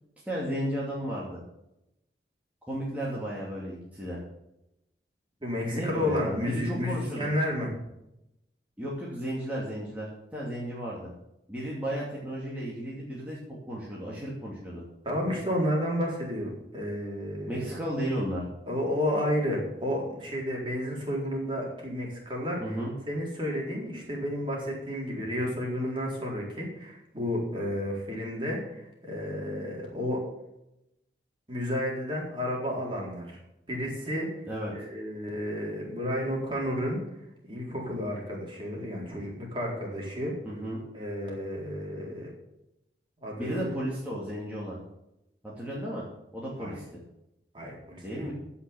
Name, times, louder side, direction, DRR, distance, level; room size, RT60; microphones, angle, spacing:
voice 1, 0.2-1.4 2.7-4.2 5.7-7.3 8.8-10.1 10.3-11.1 11.5-13.4 13.7-14.8 17.5-18.4 22.6-22.9 34.5-34.7 40.4-40.8 43.4-44.8 45.4-46.1 46.3-46.8 48.0-48.3, equal, 10° right, -6 dB, 2.6 m, -33 dB
voice 2, 5.4-7.8 15.0-17.7 18.7-22.8 23.1-30.2 31.5-33.4 33.7-34.3 34.7-37.0 37.5-40.3 40.9-42.3 43.2-43.7 46.6-46.8 47.5-48.3, equal, 30° right, -2 dB, 4.2 m, -31 dB
16.0 x 5.8 x 7.2 m, 0.86 s
head